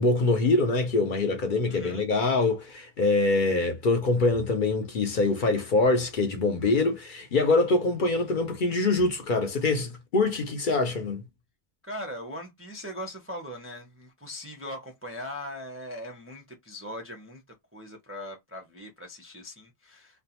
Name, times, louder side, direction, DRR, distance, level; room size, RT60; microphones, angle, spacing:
voice 1, 0.0-11.2, left 3 dB, 55° left, 0.8 m, -24 dB
voice 2, 1.7-2.1 11.8-17.4 17.7-20.2, left 1 dB, 20° right, 0.4 m, -40 dB
2.4 x 2.2 x 2.7 m
omnidirectional pair, 1.1 m